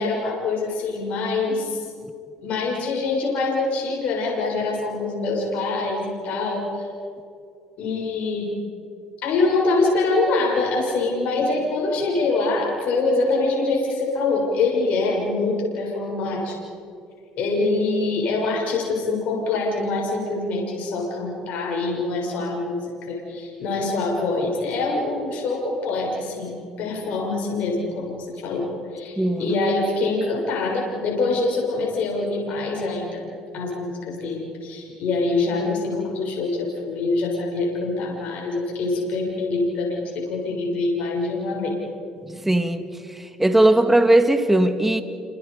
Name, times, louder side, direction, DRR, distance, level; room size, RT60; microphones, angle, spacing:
voice 1, 0.0-1.9 2.4-6.9 7.8-8.5 9.2-16.6 17.4-33.3 33.5-41.8, left 3 dB, 65° left, -1 dB, 6.9 m, -24 dB
voice 2, 29.2-29.5 42.4-42.9 43.4-45.0, right 1 dB, 10° right, 8 dB, 2.1 m, -18 dB
29.5 x 27.0 x 5.1 m, 2.5 s
supercardioid pair, 85°, 3 cm